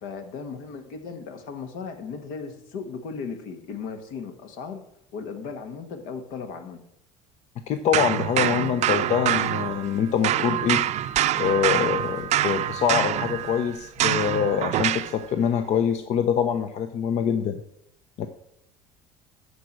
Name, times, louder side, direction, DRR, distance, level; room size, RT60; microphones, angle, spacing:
voice 1, 0.0-4.8 5.1-6.8, left 5 dB, 70° left, 7 dB, 1.7 m, -36 dB
voice 2, 7.6-10.8 11.4-17.6 18.2-18.3, left 8 dB, 50° left, 8 dB, 0.8 m, -24 dB
sound 1, 7.9-10.0 10.2-15.2, right 12 dB, 50° right, 0.6 m, -25 dB
11.5 x 4.9 x 7.5 m, 0.77 s
supercardioid pair, 100°, 14 cm